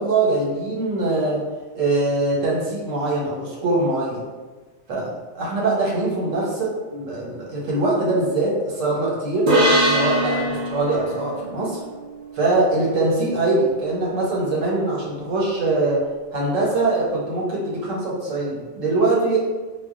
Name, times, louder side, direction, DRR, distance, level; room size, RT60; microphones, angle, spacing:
voice 1, 0.0-1.5 1.7-4.2 4.9-5.1 5.3-9.5 9.9-11.8 12.3-16.1 16.3-19.4, right 2 dB, 75° right, -4 dB, 1.2 m, -22 dB
sound 1, 9.5-12.9, right 1 dB, 50° right, 0.7 m, -22 dB
2.3 x 2.2 x 3.7 m, 1.2 s
omnidirectional pair, 1.4 m